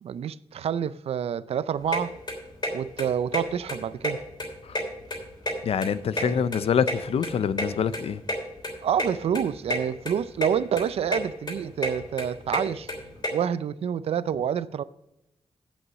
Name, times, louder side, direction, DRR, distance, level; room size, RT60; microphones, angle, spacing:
voice 1, 0.0-2.2 2.7-4.2 6.2-6.4 8.8-12.9 13.3-14.8, right 8 dB, 85° right, 0.4 m, -28 dB
sound 1, 1.9-2.0 2.3-2.7 3.0-3.1 3.3-3.4 3.7-4.5 4.7-5.9 6.2-7.7 7.9-8.0 8.3-8.4 8.6-8.7 9.0-9.1 9.4-9.8 10.1-10.5 10.8-11.2 11.5-13.3, left 1 dB, 45° left, 3.2 m, -29 dB
voice 2, 5.6-8.2, left 7 dB, 75° left, 0.5 m, -25 dB
8.6 x 7.9 x 6.3 m
wide cardioid pair, 95°, 10 cm